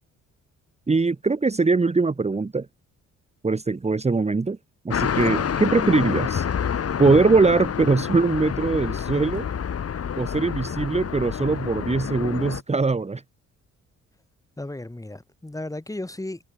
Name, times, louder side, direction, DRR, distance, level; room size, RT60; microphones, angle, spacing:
voice 1, 0.9-2.7 3.4-4.6 4.8-6.5 7.0-9.5 10.2-13.2, right 4 dB, 20° right, 1.9 m, -21 dB
sound 1, 4.9-12.6, left 7 dB, 50° left, 7.7 m, -28 dB
voice 2, 14.6-16.4, left 1 dB, 10° left, 6.0 m, -35 dB
cardioid pair, 90°, 30 cm